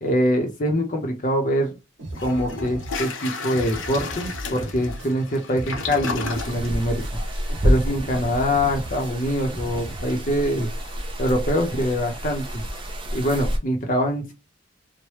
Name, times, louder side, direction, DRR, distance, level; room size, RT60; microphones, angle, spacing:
voice 1, 0.0-1.7 2.2-7.0 7.6-10.7 11.2-12.6 13.1-14.3, equal, 40° left, 2 dB, 0.7 m, -24 dB
Toilet flush, 1.6-1.7 2.1-12.9, left 4 dB, 70° left, 0.7 m, -36 dB
sound 1, 2.0-10.0, right 1 dB, 65° right, 1.2 m, -37 dB
sound 2, 6.3-13.6, equal, 25° right, 0.5 m, -28 dB
3.2 x 2.1 x 3.0 m, 0.26 s
head